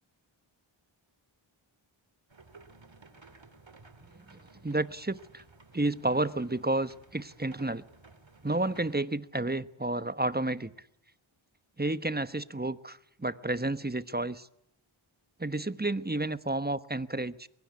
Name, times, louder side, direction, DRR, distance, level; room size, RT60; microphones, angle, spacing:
sound 1, 2.3-9.0, right 3 dB, 65° right, 2.7 m, -55 dB
voice 1, 4.6-5.4 5.7-7.8 8.4-10.7 11.8-14.5 15.4-17.5, right 2 dB, 20° right, 14 dB, 1.1 m, -31 dB
23.0 x 22.5 x 8.3 m, 0.77 s
wide cardioid pair, 45°, 49 cm